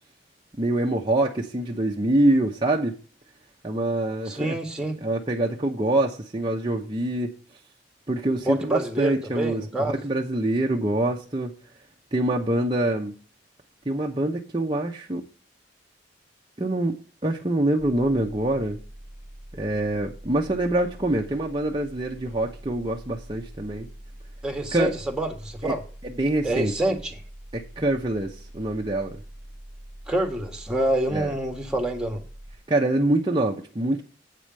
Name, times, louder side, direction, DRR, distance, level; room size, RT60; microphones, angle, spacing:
voice 1, 0.6-3.0 3.6-4.6 5.0-7.3 8.1-11.5 12.1-13.1 13.9-15.2 16.6-16.9 17.2-18.8 19.5-23.9 24.7-24.9 25.6-25.7 26.2-26.7 27.5-29.2 31.1-31.3 32.7-34.0, right 1 dB, 25° right, 0.9 m, -25 dB
voice 2, 4.3-5.0 8.5-10.0 24.4-25.8 26.4-27.2 30.1-32.2, right 1 dB, 5° right, 1.8 m, -27 dB
sound 1, 17.8-32.6, right 1 dB, 60° left, 3.5 m, -44 dB
8.4 x 5.0 x 7.4 m
head